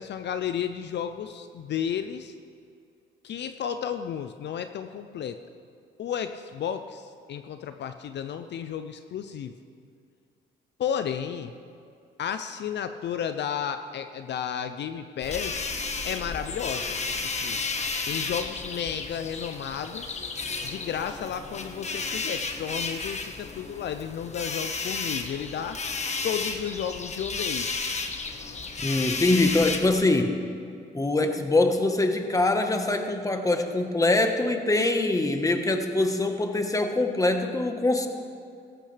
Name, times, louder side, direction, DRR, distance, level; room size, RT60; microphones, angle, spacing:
voice 1, 0.0-2.3 3.2-5.4 6.0-9.5 10.8-11.5 12.2-15.7 16.0-17.6 18.1-20.2 20.6-25.8 26.2-27.8, left 8 dB, 60° left, 9 dB, 0.6 m, -33 dB
sound 1, 15.2-30.0, left 4 dB, 35° left, 1.3 m, -33 dB
voice 2, 28.8-30.4 30.9-38.1, left 2 dB, 15° left, 5 dB, 1.3 m, -23 dB
17.5 x 14.5 x 3.4 m, 2.4 s
cardioid pair, 90°, 20 cm